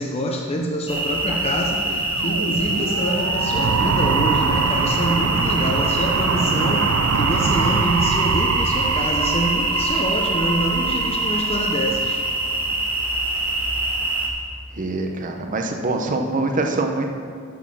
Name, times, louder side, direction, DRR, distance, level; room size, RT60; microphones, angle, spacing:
voice 1, 0.0-12.2, equal, 30° left, 0 dB, 0.7 m, -26 dB
sound 1, 0.9-14.3, right 2 dB, 10° right, 1.4 m, -24 dB
sound 2, 1.8-12.7, right 5 dB, 75° right, 0.5 m, -24 dB
voice 2, 14.7-17.1, right 2 dB, 35° right, 3 dB, 0.9 m, -24 dB
9.6 x 6.4 x 6.3 m, 2.2 s
head